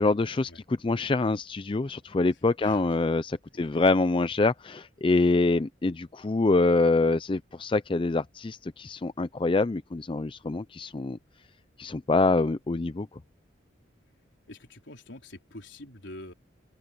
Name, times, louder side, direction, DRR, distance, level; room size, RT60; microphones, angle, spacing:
voice 1, 0.0-11.2 11.8-13.1, left 3 dB, 25° left, 0.4 m, -25 dB
voice 2, 2.6-2.9 3.7-3.9 14.5-16.3, left 1 dB, 70° left, 4.3 m, -45 dB
open air
head